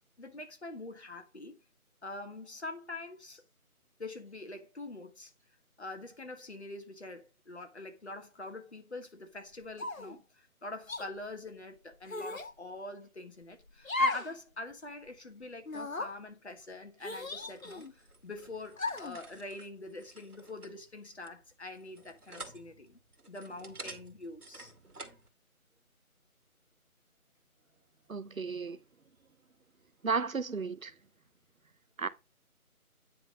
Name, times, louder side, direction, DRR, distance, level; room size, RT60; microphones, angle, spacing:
voice 1, 0.2-1.6 2.0-3.4 4.0-5.3 5.8-23.0 23.3-24.7, left 2 dB, 45° left, 1.7 m, -45 dB
sound 1, 9.8-10.2 10.9-11.1 12.1-12.5 13.8-14.4 14.7-14.8 15.7-16.1 17.0-17.9 18.8-19.2, left 2 dB, 65° left, 1.5 m, -34 dB
sound 2, 17.4-25.3, right 2 dB, 80° right, 2.1 m, -51 dB
voice 2, 28.1-28.8 30.0-30.9 32.0-32.1, right 5 dB, 65° right, 0.8 m, -33 dB
9.5 x 3.7 x 5.0 m
figure-of-eight pair, 165°, 44 cm